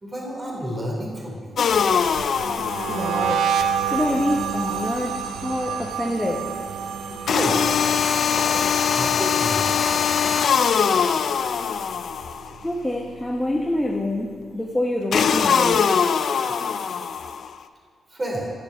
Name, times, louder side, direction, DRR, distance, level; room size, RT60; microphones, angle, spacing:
voice 1, 0.0-1.6 7.1-7.6 8.3-10.0 16.5-16.6 18.1-18.5, equal, 30° right, -2 dB, 3.3 m, -31 dB
sound 1, 1.6-3.5 7.3-12.5 15.1-17.5, left 7 dB, 65° left, 0.4 m, -22 dB
sound 2, 1.9-11.1 11.3-11.8 12.1-13.6, right 7 dB, 80° right, 0.6 m, -29 dB
voice 2, 2.9-6.5 7.0-7.2 12.6-15.9, left 1 dB, 10° left, -1 dB, 1.1 m, -26 dB
11.5 x 6.7 x 6.3 m, 2.2 s
cardioid pair, 80°, 0 cm